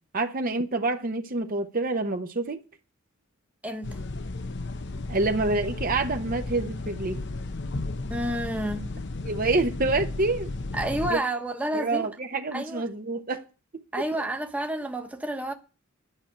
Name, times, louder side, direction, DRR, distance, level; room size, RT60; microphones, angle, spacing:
voice 1, 0.1-2.6 5.1-7.2 9.3-10.5 11.1-11.2 11.7-13.4, right 3 dB, 40° right, 0.9 m, -27 dB
voice 2, 3.6-4.0 8.1-8.9 10.7-12.1 12.5-12.8 13.9-15.5, right 1 dB, 5° right, 1.1 m, -30 dB
sound 1, 3.8-11.1, left 2 dB, 55° left, 0.8 m, -34 dB
11.0 x 6.1 x 8.8 m
head